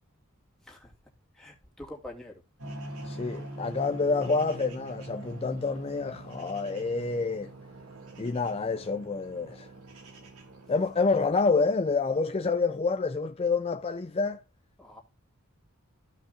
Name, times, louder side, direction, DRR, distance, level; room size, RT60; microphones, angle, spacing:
voice 1, 1.3-2.4 14.8-15.0, left 1 dB, ahead, 2.8 m, -45 dB
sound 1, 2.6-11.7, right 2 dB, 85° right, 2.5 m, -43 dB
voice 2, 3.0-7.5 8.2-9.7 10.7-14.4, left 4 dB, 25° left, 0.4 m, -28 dB
15.0 x 5.7 x 2.5 m
head